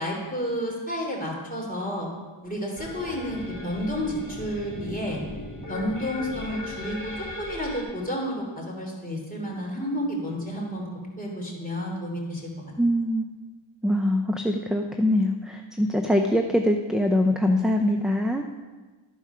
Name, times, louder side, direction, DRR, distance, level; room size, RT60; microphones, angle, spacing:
voice 1, 0.0-2.1 2.4-5.2 5.7-12.5, equal, 15° left, -2 dB, 2.9 m, -31 dB
sound 1, 2.8-7.8, left 1 dB, 40° left, 2.1 m, -37 dB
voice 2, 12.8-13.2 13.8-18.4, left 1 dB, ahead, 4 dB, 0.5 m, -23 dB
12.5 x 4.8 x 5.6 m, 1.3 s
wide cardioid pair, 45°, 48 cm